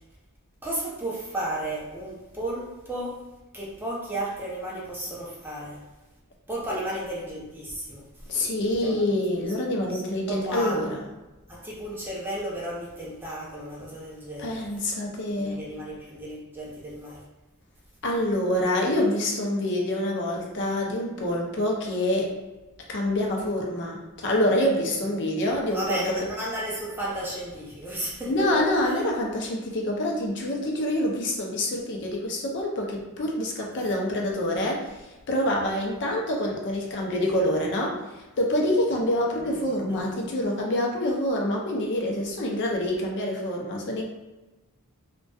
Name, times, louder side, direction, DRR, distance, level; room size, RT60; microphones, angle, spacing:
voice 1, 0.6-3.3 3.5-5.9 6.5-8.4 8.8-9.0 9.9-10.0 10.3-10.8 11.5-14.6 15.4-17.2 25.5-29.0 39.7-40.0, right 1 dB, 10° right, -5 dB, 0.4 m, -34 dB
voice 2, 8.3-11.0 14.4-15.6 18.0-22.3 22.9-26.2 28.3-34.8 35.3-38.0 38.4-44.1, left 1 dB, 50° left, 0 dB, 0.5 m, -26 dB
2.6 x 2.2 x 2.2 m, 1.1 s
head